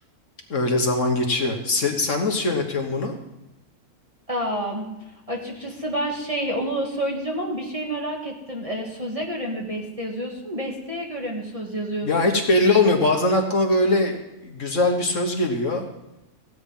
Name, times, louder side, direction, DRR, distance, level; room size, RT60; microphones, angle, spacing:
voice 1, 0.5-3.1 12.0-14.2 14.4-15.9, left 2 dB, 55° left, 3 dB, 1.6 m, -21 dB
voice 2, 4.3-4.9 5.3-12.4, right 1 dB, 25° right, -1 dB, 1.6 m, -29 dB
15.5 x 8.7 x 5.5 m, 0.94 s
omnidirectional pair, 1.6 m